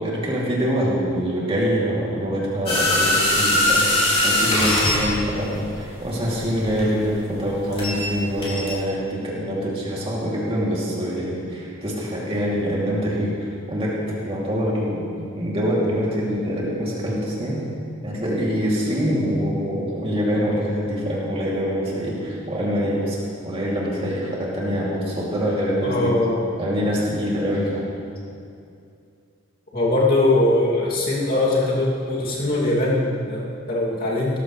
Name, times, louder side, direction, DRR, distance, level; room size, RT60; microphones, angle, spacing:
voice 1, 0.0-13.9 14.2-17.6 18.0-23.2 23.4-26.1 26.6-27.9, equal, 25° right, -5 dB, 2.8 m, -25 dB
sound 1, 2.7-8.1 8.4-8.7, left 1 dB, 30° left, 3.5 m, -21 dB
voice 2, 25.8-26.5 29.7-34.4, left 2 dB, 45° left, -5 dB, 2.7 m, -21 dB
17.5 x 14.0 x 3.3 m, 2.4 s
head